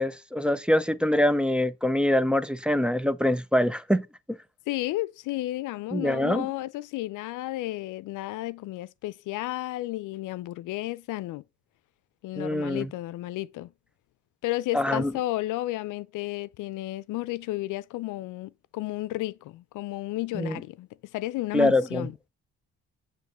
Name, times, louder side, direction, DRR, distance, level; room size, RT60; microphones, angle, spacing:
voice 1, 0.0-4.1 5.9-6.5 12.4-12.9 14.7-15.1 20.3-20.6 21.5-22.1, left 1 dB, 5° right, 0.5 m, -24 dB
voice 2, 4.7-11.4 12.2-13.7 14.4-22.2, left 17 dB, 85° left, 0.5 m, -32 dB
9.1 x 3.1 x 6.0 m
cardioid pair, 90°, 30 cm